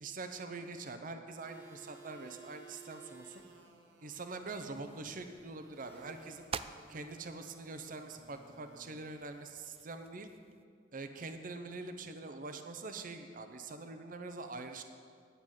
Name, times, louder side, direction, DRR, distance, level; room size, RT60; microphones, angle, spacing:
voice 1, 0.0-3.4 4.0-6.5 6.9-10.3 10.9-14.8, right 3 dB, 50° right, 7 dB, 0.8 m, -44 dB
sound 1, 1.3-9.4, right 3 dB, 80° right, 1.4 m, -58 dB
sound 2, 4.4-10.6, right 6 dB, 30° right, 0.3 m, -49 dB
9.7 x 6.8 x 9.1 m, 2.1 s
head